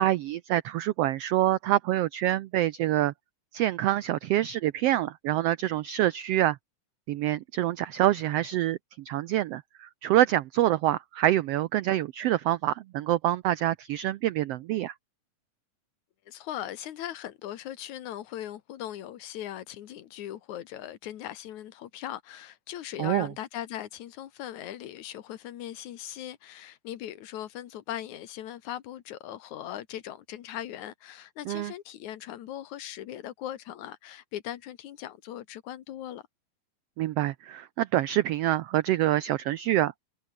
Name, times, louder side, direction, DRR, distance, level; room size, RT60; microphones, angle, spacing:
voice 1, 0.0-3.1 3.5-6.6 7.1-14.9 23.0-23.3 31.5-31.7 37.0-40.0, right 14 dB, 90° right, 1.3 m, -26 dB
voice 2, 16.3-36.2, left 12 dB, 75° left, 2.6 m, -39 dB
omnidirectional pair, 3.5 m